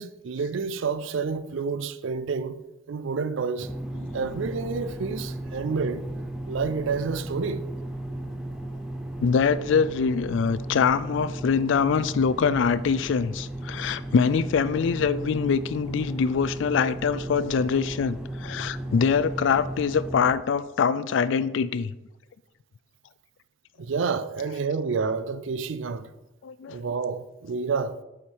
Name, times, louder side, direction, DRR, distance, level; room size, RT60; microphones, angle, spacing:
voice 1, 0.0-2.6 2.9-3.7 4.1-6.0 6.5-7.7 23.8-26.1 26.7-28.0, right 5 dB, 70° right, 0.4 m, -29 dB
sound 1, 3.6-20.3, right 1 dB, 5° right, 0.5 m, -35 dB
voice 2, 9.2-21.9 26.4-26.8, left 6 dB, 65° left, 0.3 m, -24 dB
6.9 x 4.9 x 4.5 m
head